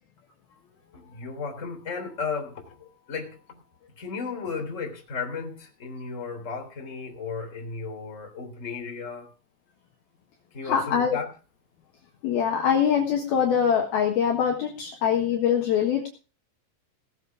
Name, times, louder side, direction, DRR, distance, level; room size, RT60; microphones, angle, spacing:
voice 1, 0.9-3.6 4.0-9.3 10.5-11.3, left 5 dB, 20° left, 2 dB, 3.1 m, -35 dB
voice 2, 10.6-11.2 12.2-16.1, left 8 dB, 65° left, 1 dB, 3.0 m, -23 dB
18.0 x 7.9 x 4.8 m, 0.35 s
omnidirectional pair, 5.5 m